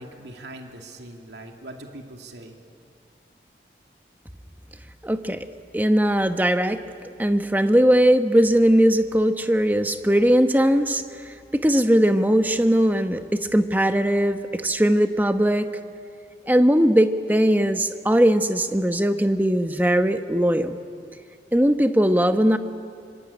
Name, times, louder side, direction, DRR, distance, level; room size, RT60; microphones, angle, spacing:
voice 1, 0.0-2.6, right 1 dB, 80° right, 2 dB, 2.5 m, -41 dB
voice 2, 5.0-5.4 5.7-6.8 7.2-15.7 16.5-20.8 21.5-22.6, equal, 10° right, 7 dB, 1.0 m, -19 dB
24.5 x 24.5 x 9.9 m, 2.4 s
head